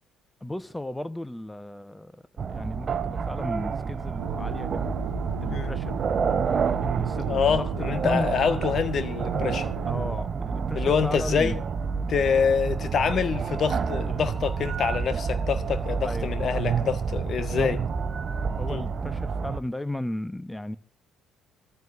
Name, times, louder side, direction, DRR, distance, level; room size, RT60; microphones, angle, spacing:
voice 1, 0.4-2.1 2.5-4.9 5.4-5.9 7.0-7.6 8.0-8.3 9.9-11.5 16.0-16.3 17.4-17.7 18.6-20.8, left 1 dB, 10° left, 1.1 m, -34 dB
sound 1, 2.4-19.6, right 5 dB, 45° right, 0.8 m, -29 dB
sound 2, 4.2-10.2, right 4 dB, 80° right, 1.4 m, -36 dB
voice 2, 7.2-9.7 10.7-11.6 12.1-17.8 18.7-18.9, left 6 dB, 50° left, 1.5 m, -26 dB
27.5 x 14.0 x 2.7 m
hypercardioid pair, 50°, 0 cm